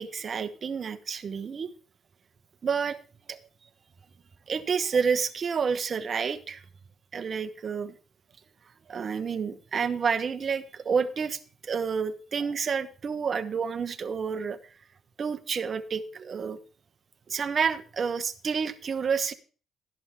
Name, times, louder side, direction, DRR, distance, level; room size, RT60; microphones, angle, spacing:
voice 1, 0.0-1.7 2.6-3.0 3.3-3.4 4.5-6.6 7.1-7.9 8.9-14.6 15.2-16.6 17.3-19.3, right 6 dB, 45° right, 11 dB, 1.1 m, -29 dB
13.0 x 11.0 x 3.6 m, 0.38 s
cardioid pair, 90°, 0 cm